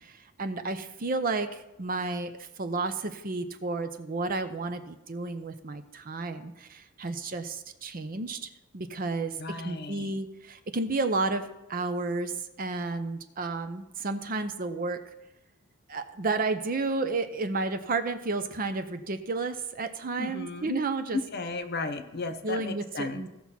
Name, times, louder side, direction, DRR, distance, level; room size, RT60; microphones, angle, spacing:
voice 1, 0.4-9.4 9.6-15.1 15.9-21.2 22.4-23.3, right 3 dB, 40° right, 9 dB, 0.7 m, -32 dB
voice 2, 9.4-10.2 20.2-20.8 21.1-23.2, left 3 dB, 50° left, 8 dB, 0.9 m, -34 dB
16.5 x 5.9 x 4.3 m, 0.92 s
head